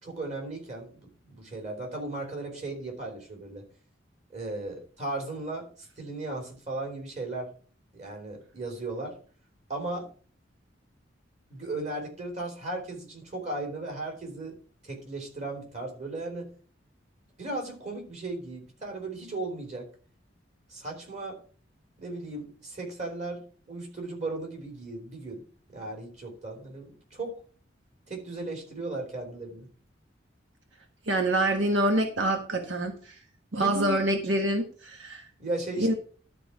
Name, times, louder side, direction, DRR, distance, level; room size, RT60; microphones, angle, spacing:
voice 1, 0.0-3.6 4.3-7.5 7.9-9.2 9.7-10.1 11.5-14.6 14.8-16.5 17.4-19.9 20.7-21.4 22.0-23.4 23.7-25.4 25.7-27.4 28.1-29.7 33.6-34.0 35.4-36.0, right 2 dB, 40° right, 3 dB, 3.5 m, -36 dB
voice 2, 31.1-33.0 33.5-35.2 35.8-35.9, right 1 dB, 90° right, 4 dB, 1.4 m, -26 dB
12.0 x 4.4 x 6.2 m, 0.41 s
head